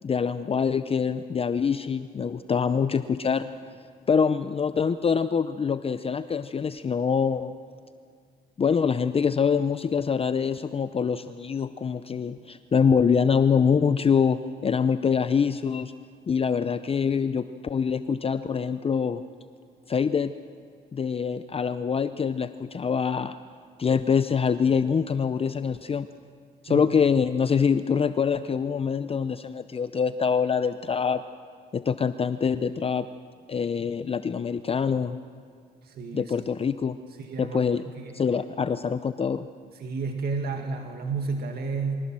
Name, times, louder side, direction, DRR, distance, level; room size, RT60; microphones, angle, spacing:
voice 1, 0.0-3.5 4.1-7.6 8.6-14.4 14.6-15.9 16.3-19.2 19.9-20.3 20.9-23.4 23.8-26.1 26.6-31.2 31.7-33.1 33.5-35.2 36.1-37.0 37.4-37.8 38.1-39.5, left 6 dB, 30° left, 12 dB, 0.6 m, -25 dB
voice 2, 35.8-36.5 37.2-37.6 38.0-38.2 39.7-42.1, right 4 dB, 60° right, 3 dB, 1.9 m, -31 dB
23.5 x 16.0 x 7.5 m, 2.1 s
cardioid pair, 85°, 18 cm